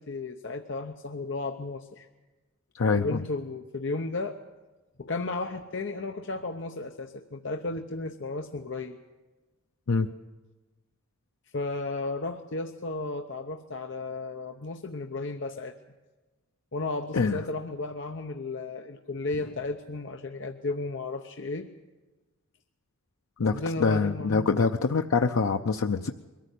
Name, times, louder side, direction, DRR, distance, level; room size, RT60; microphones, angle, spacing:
voice 1, 0.0-2.1 2.9-4.4 5.0-9.0 11.5-15.7 16.7-21.7 23.4-24.5, left 3 dB, 60° left, 5 dB, 0.8 m, -34 dB
voice 2, 2.7-3.2 9.9-10.1 17.1-17.4 23.4-26.1, left 4 dB, 90° left, 5 dB, 0.6 m, -25 dB
22.5 x 14.0 x 8.3 m, 1.2 s
head